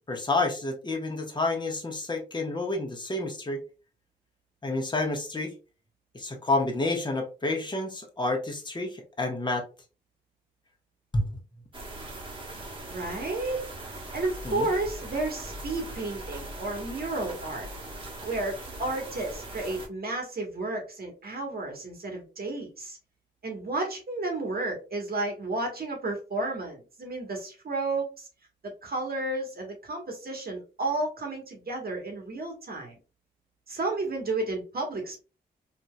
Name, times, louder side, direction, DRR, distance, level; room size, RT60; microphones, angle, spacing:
voice 1, 0.1-3.6 4.6-5.5 6.1-9.6 11.1-11.3 14.4-14.7, left 2 dB, 25° left, 2 dB, 1.2 m, -29 dB
sound 1, 11.7-19.9, right 1 dB, 25° right, 1.2 m, -40 dB
voice 2, 12.9-13.6 14.1-17.7 18.2-23.0 23.4-28.3 28.6-33.0 33.7-35.2, right 2 dB, 50° right, 2 dB, 1.2 m, -32 dB
3.6 x 2.7 x 2.2 m, 0.32 s
supercardioid pair, 55°, 20 cm